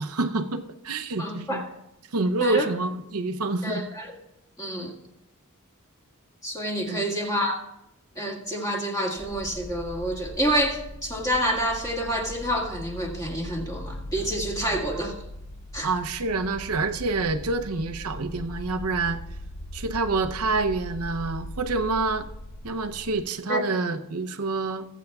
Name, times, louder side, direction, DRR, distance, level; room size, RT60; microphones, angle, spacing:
voice 1, 0.0-1.6 2.1-3.9 4.8-4.9 6.9-7.0 14.6-14.8 15.8-19.2 19.7-22.3 22.6-24.9, right 3 dB, 80° right, 8 dB, 0.7 m, -27 dB
voice 2, 1.2-1.7 2.4-2.7 3.6-4.1 4.6-4.9 6.4-7.6 8.2-15.1 15.7-15.9 23.5-23.6, equal, 15° left, -1 dB, 1.9 m, -28 dB
sound 1, 9.2-23.2, left 1 dB, 55° left, 3.1 m, -40 dB
21.0 x 8.3 x 2.4 m, 0.88 s
head